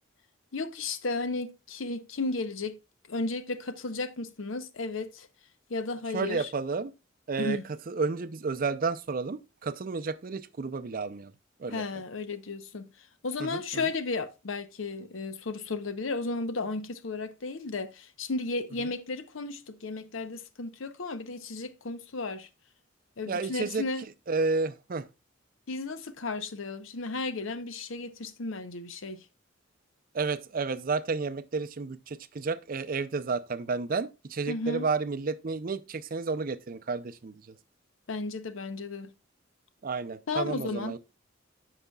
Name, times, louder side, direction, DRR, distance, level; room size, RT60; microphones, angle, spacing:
voice 1, 0.5-2.8 3.1-5.3 5.7-6.5 7.4-7.6 11.7-12.9 13.2-22.5 23.2-24.1 25.7-29.2 34.5-34.9 38.1-39.1 40.3-41.0, left 3 dB, 75° left, 0.7 m, -34 dB
voice 2, 6.1-6.9 7.3-7.6 7.9-11.3 11.6-11.8 13.4-13.9 18.8-18.9 23.3-23.8 24.3-25.1 30.1-37.5 39.8-41.0, right 4 dB, 45° right, 0.5 m, -31 dB
13.5 x 4.9 x 2.3 m
head